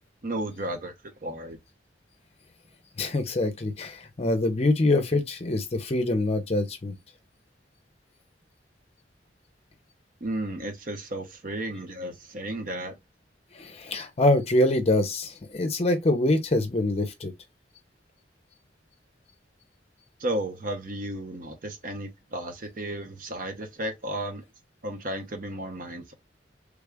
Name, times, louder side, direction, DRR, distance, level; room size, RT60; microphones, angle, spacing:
voice 1, 0.2-0.9 1.2-1.6 10.2-12.9 20.2-24.4 24.8-26.1, right 1 dB, 50° right, 0.8 m, -33 dB
voice 2, 3.0-7.0 13.5-17.3, left 2 dB, 35° left, 0.6 m, -25 dB
3.4 x 2.4 x 3.3 m
head